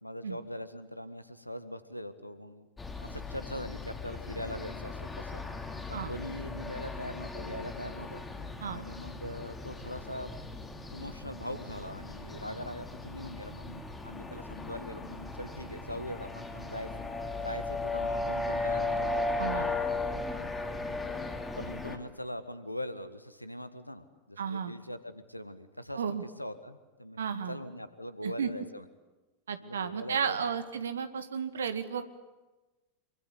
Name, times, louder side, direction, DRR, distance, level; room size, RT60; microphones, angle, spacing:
voice 1, 0.0-2.7 3.0-5.4 5.9-8.2 8.7-10.3 10.9-16.9 17.4-19.0 21.6-28.8 29.6-30.6, left 1 dB, 90° left, 12 dB, 1.7 m, -41 dB
sound 1, 2.8-22.0, left 3 dB, 10° left, 2.9 m, -37 dB
voice 2, 19.4-19.7 24.4-24.7 26.0-26.2 27.2-27.6 28.2-28.5 29.5-32.0, right 7 dB, 65° right, 10 dB, 2.1 m, -33 dB
27.0 x 24.5 x 8.5 m, 1.1 s
figure-of-eight pair, 90°, 0 cm